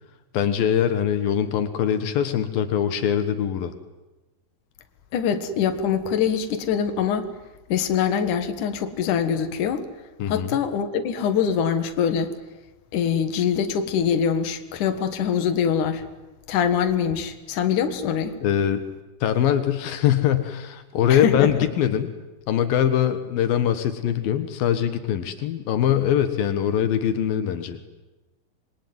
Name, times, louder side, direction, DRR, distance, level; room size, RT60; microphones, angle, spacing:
voice 1, 0.3-3.7 10.2-10.6 18.4-18.8 19.2-22.1 22.5-27.8, left 9 dB, 80° left, 9 dB, 3.2 m, -22 dB
voice 2, 5.1-7.3 7.7-9.9 10.3-12.3 12.9-16.1 16.5-18.4 21.1-21.5, left 7 dB, 65° left, 7 dB, 3.0 m, -23 dB
26.5 x 23.0 x 9.6 m, 1.1 s
omnidirectional pair, 4.1 m